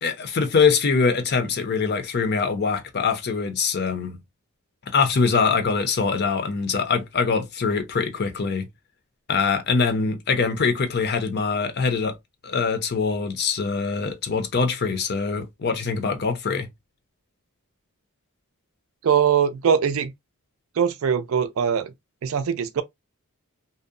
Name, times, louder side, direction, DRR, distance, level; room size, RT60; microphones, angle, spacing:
voice 1, 0.0-4.2 4.9-8.7 9.3-12.1 12.4-16.7, left 5 dB, 45° left, 0.5 m, -23 dB
voice 2, 19.0-20.1 20.8-21.9 22.2-22.8, right 7 dB, 65° right, 0.4 m, -21 dB
2.7 x 2.0 x 2.4 m
head